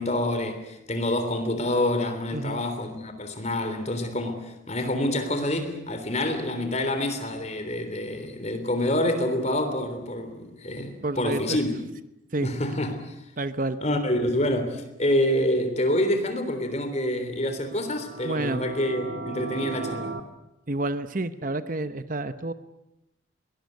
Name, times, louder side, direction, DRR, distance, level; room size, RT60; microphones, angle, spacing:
voice 1, 0.0-11.8 12.4-13.1 13.8-20.1, left 1 dB, 35° left, 3.4 m, -27 dB
voice 2, 2.3-2.6 11.0-11.6 12.3-12.5 13.4-13.8 18.2-18.6 20.7-22.5, right 2 dB, 40° right, 0.8 m, -29 dB
sound 1, 17.6-20.2, right 3 dB, 70° right, 1.9 m, -36 dB
22.5 x 20.0 x 9.4 m
head